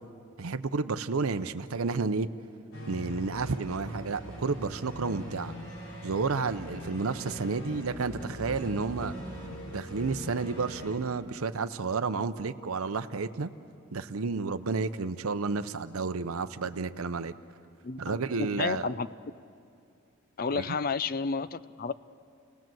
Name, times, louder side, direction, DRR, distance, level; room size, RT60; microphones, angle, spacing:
voice 1, 0.4-2.3 2.9-5.5 6.0-9.1 9.7-13.5 13.9-17.3 18.0-18.9 20.5-20.6, right 4 dB, 85° right, 10 dB, 0.7 m, -31 dB
sound 1, 2.7-11.0, equal, 85° left, 5.0 m, -41 dB
voice 2, 17.8-19.1 20.4-21.9, left 4 dB, 45° left, 16 dB, 0.5 m, -31 dB
30.0 x 18.5 x 7.7 m, 2.5 s
head